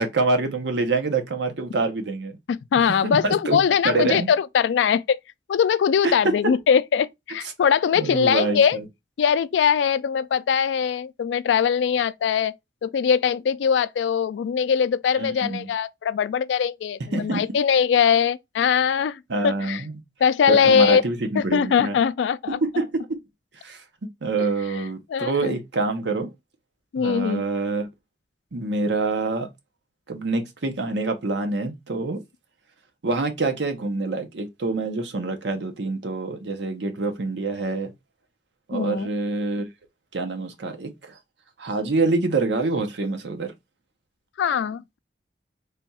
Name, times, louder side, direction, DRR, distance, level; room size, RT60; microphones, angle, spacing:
voice 1, 0.0-2.4 3.0-4.3 6.0-6.1 6.4-6.6 8.0-8.8 15.2-15.7 17.1-17.4 19.3-20.0 20.5-21.9 22.5-23.2 23.6-23.8 24.2-26.3 27.0-27.9 28.5-29.5 30.1-32.2 33.0-37.9 38.7-39.7 40.1-41.2 41.6-43.5, right 3 dB, 80° right, 0.8 m, -26 dB
voice 2, 2.5-5.2 5.5-8.8 9.2-12.5 12.8-19.8 20.2-21.0 21.4-22.6 24.4-24.5 25.1-25.5 26.9-27.4 38.7-39.1 44.4-45.0, left 7 dB, 90° left, 0.3 m, -21 dB
3.4 x 2.3 x 4.0 m
head